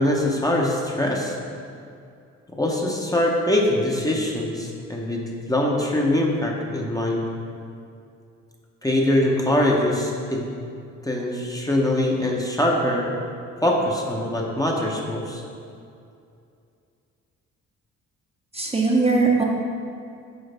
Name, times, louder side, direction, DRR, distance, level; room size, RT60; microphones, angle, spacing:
voice 1, 0.0-1.4 2.5-7.3 8.8-10.5 11.0-13.2 13.6-15.4, left 1 dB, 10° left, -1 dB, 0.8 m, -23 dB
voice 2, 18.5-19.4, right 3 dB, 20° right, -1 dB, 0.8 m, -20 dB
8.1 x 4.6 x 3.4 m, 2.5 s
cardioid pair, 90°, 30 cm